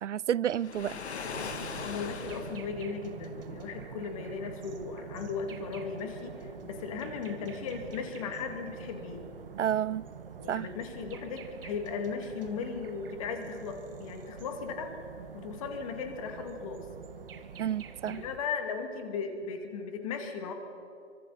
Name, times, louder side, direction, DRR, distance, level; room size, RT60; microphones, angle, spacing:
voice 1, 0.0-1.0 9.6-10.1 10.5-10.7 17.6-18.2, right 10 dB, 70° right, 0.5 m, -30 dB
Waves surf, 0.6-2.7, left 5 dB, 60° left, 2.4 m, -38 dB
sound 1, 1.3-18.4, right 7 dB, 45° right, 1.6 m, -46 dB
voice 2, 1.8-9.3 10.4-15.0 15.3-16.9 18.0-20.5, left 5 dB, 25° left, 2.4 m, -37 dB
26.5 x 25.0 x 4.2 m
hypercardioid pair, 160°, 38 cm